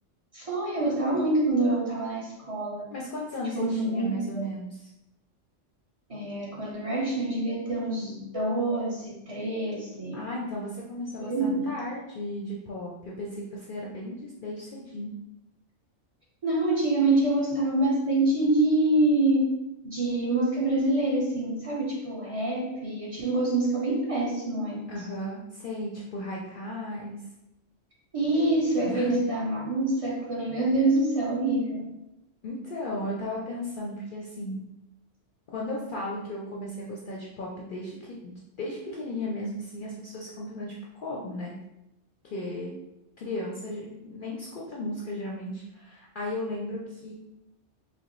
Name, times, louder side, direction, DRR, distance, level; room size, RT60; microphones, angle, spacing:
voice 1, 0.3-2.8 3.5-4.5 6.1-10.2 11.2-11.6 16.4-19.5 19.8-24.8 28.1-31.8, right 2 dB, 30° right, -6 dB, 0.8 m, -26 dB
voice 2, 2.9-4.9 10.1-15.1 24.9-27.2 28.8-29.1 32.4-34.6 35.5-41.5 42.2-42.7 43.2-47.1, left 1 dB, 55° left, -3 dB, 0.6 m, -35 dB
5.0 x 2.1 x 3.0 m, 0.91 s
omnidirectional pair, 1.3 m